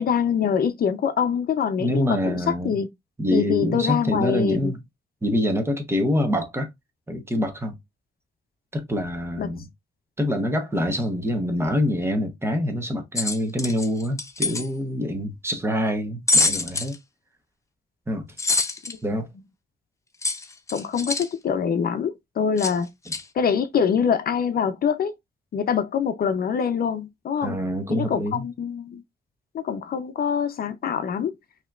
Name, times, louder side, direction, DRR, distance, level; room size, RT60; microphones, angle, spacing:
voice 1, 0.0-2.4 2.6-2.9 3.3-4.7 9.4-9.5 18.9-19.0 20.7-22.9 23.4-25.1 25.5-27.6 27.9-29.0 29.5-31.3, left 7 dB, 60° left, 0.6 m, -24 dB
voice 2, 1.8-2.8 3.2-4.8 5.2-6.7 7.1-7.8 8.7-9.7 10.2-17.0 18.1-18.6 19.0-19.3 23.1-23.2 27.4-28.5, equal, 15° right, 0.9 m, -25 dB
sound 1, 13.1-14.7 16.3-16.9 18.4-18.9 20.2-21.3 22.6-22.7 23.1-23.2, left 3 dB, 15° left, 0.5 m, -24 dB
5.5 x 2.9 x 2.4 m
wide cardioid pair, 165°, 18 cm